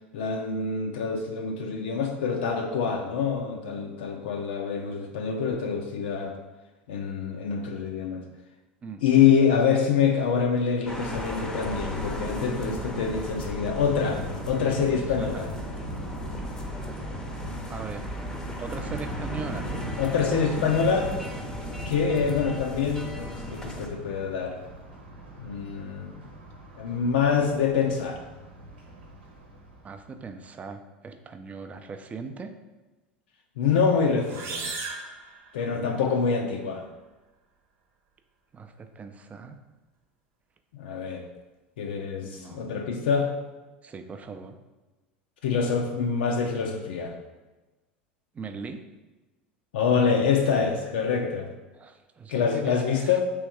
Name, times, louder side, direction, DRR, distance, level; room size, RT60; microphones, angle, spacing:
voice 1, 0.1-6.3 6.9-8.2 9.0-15.5 20.0-21.1 21.9-24.6 25.4-26.3 26.8-28.2 33.6-34.7 35.5-36.9 40.7-41.3 41.8-43.3 45.4-47.2 49.7-51.5 52.3-53.2, left 6 dB, 70° left, 2 dB, 0.4 m, -25 dB
sound 1, 10.9-23.9, left 1 dB, 10° left, 0.7 m, -36 dB
Thunder, 12.8-30.1, right 1 dB, 80° right, 1.0 m, -40 dB
voice 2, 15.0-15.5 17.7-18.1 18.6-19.7 29.8-32.5 35.7-36.0 38.5-39.6 42.2-42.8 43.8-44.5 48.3-48.8 51.7-53.2, right 5 dB, 25° right, 7 dB, 0.5 m, -39 dB
sound 2, 34.2-36.1, right 4 dB, 50° right, 0.9 m, -37 dB
3.4 x 3.1 x 4.7 m, 1.2 s
hypercardioid pair, 80°, 6 cm